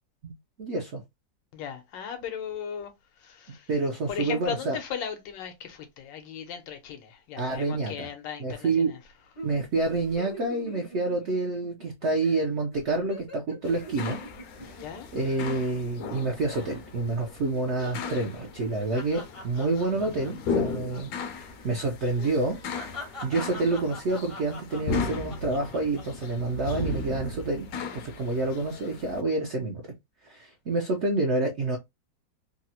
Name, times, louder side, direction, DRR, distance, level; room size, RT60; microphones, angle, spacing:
voice 1, 0.6-1.0 3.7-4.8 7.4-8.1 8.4-8.9 9.4-14.2 14.6-14.8 15.1-22.6 23.2-29.8 30.2-31.8, right 2 dB, 75° right, 0.6 m, -28 dB
voice 2, 1.5-3.7 4.1-9.0 14.8-15.1, left 8 dB, 85° left, 1.4 m, -37 dB
sound 1, 9.4-11.9 12.2-12.4 12.7-16.2 16.5-16.9 17.2-21.3 21.5-21.7 22.2-26.3 26.7-27.2, equal, 35° left, 0.5 m, -44 dB
sound 2, 13.6-29.2, left 4 dB, 70° left, 1.0 m, -36 dB
3.6 x 2.0 x 2.8 m
omnidirectional pair, 1.9 m